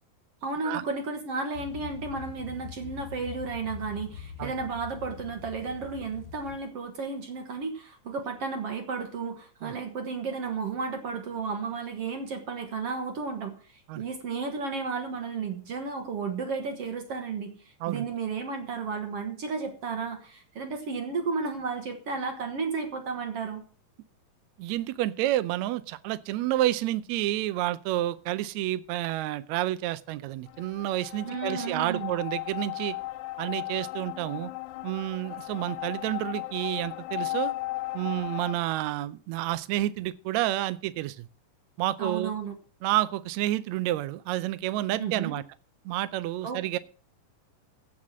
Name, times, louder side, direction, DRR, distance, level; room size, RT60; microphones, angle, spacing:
voice 1, 0.4-23.6 31.2-32.1 42.0-42.6 45.0-45.4 46.4-46.8, right 4 dB, 55° right, 2.1 m, -33 dB
sound 1, 1.5-6.6, left 7 dB, 40° left, 2.7 m, -43 dB
voice 2, 24.6-33.0 33.4-34.5 34.8-37.5 37.9-41.3 41.8-42.3 42.8-45.4 45.8-46.8, right 15 dB, 80° right, 1.6 m, -29 dB
sound 2, 30.5-38.5, left 18 dB, 85° left, 2.3 m, -36 dB
16.0 x 5.9 x 6.2 m
omnidirectional pair, 3.9 m